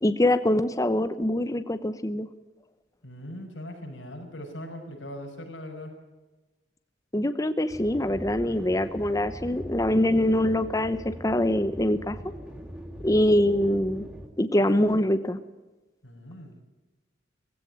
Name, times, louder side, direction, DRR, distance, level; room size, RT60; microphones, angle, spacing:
voice 1, 0.0-2.3 7.1-12.2 13.0-14.0 14.4-15.4, left 1 dB, 20° left, 11 dB, 0.8 m, -24 dB
voice 2, 3.0-5.9 16.0-16.5, left 1 dB, 90° left, 1 dB, 6.4 m, -40 dB
sound 1, 7.7-14.3, equal, 5° right, 3.3 m, -41 dB
18.5 x 16.0 x 9.1 m, 1.1 s
head